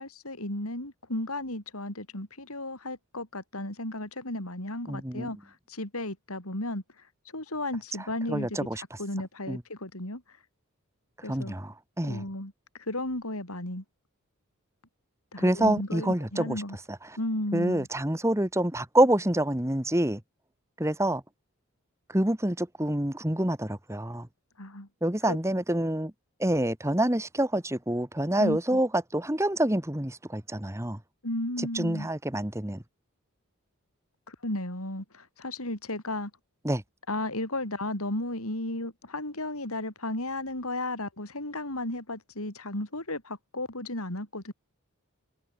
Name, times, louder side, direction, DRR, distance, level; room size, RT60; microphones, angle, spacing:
voice 1, 0.0-6.8 7.3-10.2 11.2-11.6 12.1-12.5 12.9-13.8 15.3-16.8 17.2-17.9 24.6-24.9 25.2-25.4 28.4-28.8 31.2-32.1 34.3-36.3 37.1-44.5, left 1 dB, 80° left, 6.3 m, -34 dB
voice 2, 4.9-5.3 8.3-8.8 9.5-9.6 11.3-12.2 15.4-16.6 17.5-20.2 20.8-21.2 22.1-24.3 25.0-26.1 26.4-31.0 31.6-32.8 36.6-36.8, right 1 dB, 15° right, 1.6 m, -27 dB
head